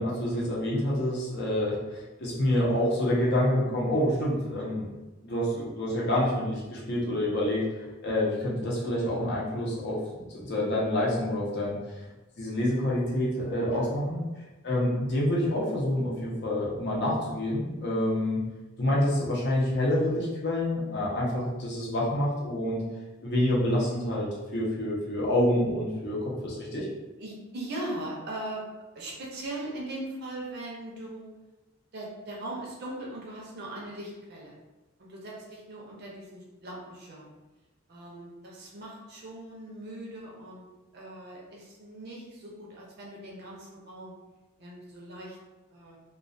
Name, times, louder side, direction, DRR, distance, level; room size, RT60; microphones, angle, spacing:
voice 1, 0.0-4.9 5.2-11.8 12.4-14.2 14.6-18.4 18.8-22.8 23.2-26.9, left 1 dB, 55° left, -5 dB, 0.6 m, -27 dB
voice 2, 27.2-28.7 28.9-31.3 31.9-34.5 35.0-37.3 37.9-40.7 40.9-44.1 44.6-45.4 45.7-46.0, right 1 dB, 50° right, -3 dB, 0.5 m, -40 dB
2.2 x 2.2 x 2.5 m, 1.1 s
head